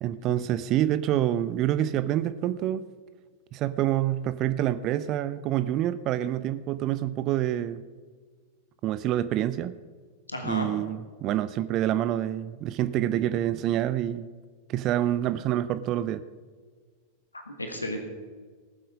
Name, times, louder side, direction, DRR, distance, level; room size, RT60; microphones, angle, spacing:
voice 1, 0.0-2.9 3.5-7.8 8.8-9.7 10.4-14.3 14.7-16.2, right 12 dB, 35° right, 13 dB, 0.5 m, -27 dB
voice 2, 10.3-10.7 17.3-18.0, left 1 dB, 80° left, 4 dB, 1.5 m, -33 dB
18.5 x 7.7 x 5.2 m, 1.5 s
figure-of-eight pair, 90°, 0 cm